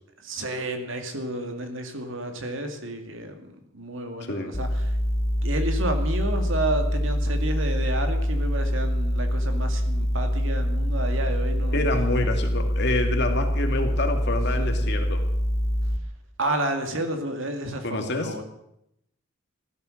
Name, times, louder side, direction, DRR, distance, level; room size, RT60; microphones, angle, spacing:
voice 1, 0.2-5.0 5.4-11.8 14.6-14.9 16.4-18.4, right 1 dB, 65° right, 5 dB, 2.3 m, -31 dB
sound 1, 4.5-16.0, equal, 30° left, 1.4 m, -25 dB
voice 2, 11.7-15.2 17.8-18.3, left 2 dB, 55° left, 4 dB, 2.3 m, -27 dB
15.0 x 12.5 x 6.5 m, 0.79 s
head